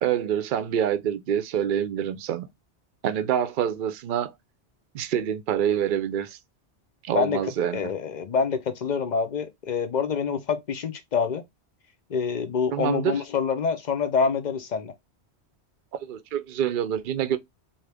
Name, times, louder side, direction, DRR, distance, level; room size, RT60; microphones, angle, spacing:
voice 1, 0.0-2.5 3.0-4.3 4.9-6.4 7.0-7.8 12.7-13.2 16.0-17.4, right 9 dB, 60° right, 0.6 m, -26 dB
voice 2, 7.1-11.4 12.1-14.9, left 5 dB, 50° left, 0.6 m, -26 dB
3.8 x 2.8 x 3.4 m
omnidirectional pair, 1.1 m